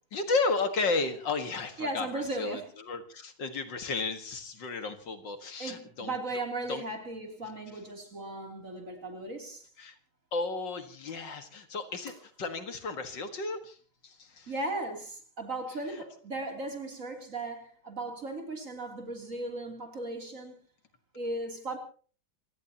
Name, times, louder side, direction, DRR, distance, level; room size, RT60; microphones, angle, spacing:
voice 1, 0.1-6.1 6.7-6.8 9.8-10.0 10.3-13.8 14.0-14.5, left 3 dB, 65° left, 2.3 m, -33 dB
voice 2, 1.8-2.7 5.6-9.7 12.1-12.2 14.5-20.6 21.1-21.8, right 2 dB, 40° right, 3.5 m, -37 dB
27.0 x 18.0 x 2.9 m
omnidirectional pair, 2.2 m